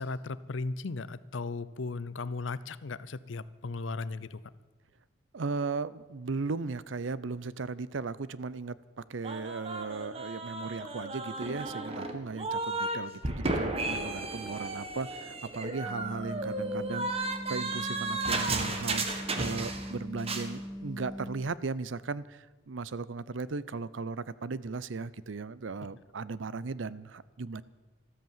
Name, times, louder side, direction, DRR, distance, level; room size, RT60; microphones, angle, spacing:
voice 1, 0.0-4.4, left 3 dB, 90° left, 17 dB, 0.7 m, -36 dB
voice 2, 5.3-19.1 19.3-27.6, right 4 dB, 90° right, 18 dB, 0.6 m, -37 dB
sound 1, 9.2-13.0 13.2-19.9 20.2-20.5, right 2 dB, 30° right, 1.6 m, -34 dB
sound 2, 15.8-21.4, equal, 20° left, 3.0 m, -41 dB
13.5 x 13.0 x 7.3 m, 1.2 s
head